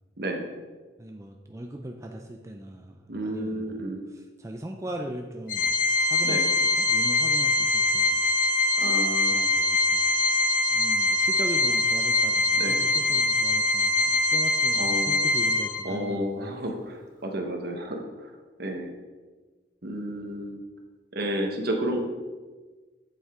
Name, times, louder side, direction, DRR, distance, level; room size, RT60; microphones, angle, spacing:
voice 1, 1.0-5.7 6.1-8.2 9.3-10.1 10.7-16.6, right 1 dB, 15° right, 2 dB, 0.5 m, -39 dB
voice 2, 3.1-4.0 6.2-6.5 8.8-9.4 12.6-12.8 14.8-15.2 15.8-18.3 18.6-18.9 19.8-20.6 21.1-22.0, equal, 60° right, 3 dB, 1.3 m, -31 dB
Organ, 5.5-16.1, left 2 dB, 50° left, 0.7 m, -23 dB
8.1 x 8.0 x 3.7 m, 1.3 s
head